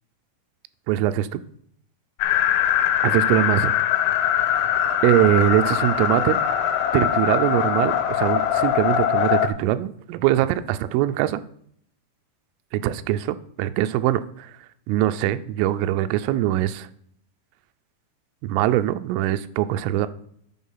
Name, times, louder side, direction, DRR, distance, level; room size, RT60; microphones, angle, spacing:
voice 1, 0.9-1.4 3.0-3.7 5.0-6.4 6.9-11.4 12.7-14.5 14.9-16.9 18.4-20.1, right 13 dB, 85° right, 11 dB, 3.1 m, -22 dB
sound 1, 2.2-9.5, left 10 dB, 85° left, 3.1 m, -22 dB
10.5 x 4.4 x 5.6 m, 0.66 s
omnidirectional pair, 5.6 m